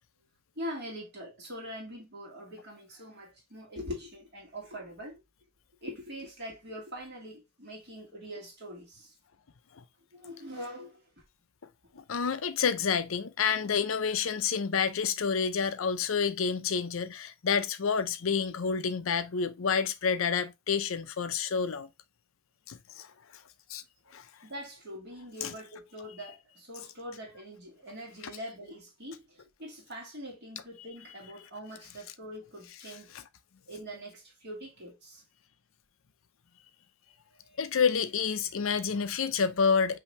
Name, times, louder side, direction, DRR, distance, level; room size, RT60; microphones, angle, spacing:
voice 1, 0.6-5.2 5.8-9.2 10.1-11.2 24.4-33.1 33.7-35.2 37.3-37.6, equal, 50° right, 2.0 m, -43 dB
voice 2, 12.0-21.9 22.7-23.1 23.7-23.8 24.1-24.2 25.4-25.5 37.6-40.0, left 6 dB, 75° left, 0.6 m, -29 dB
5.6 x 2.8 x 3.2 m
head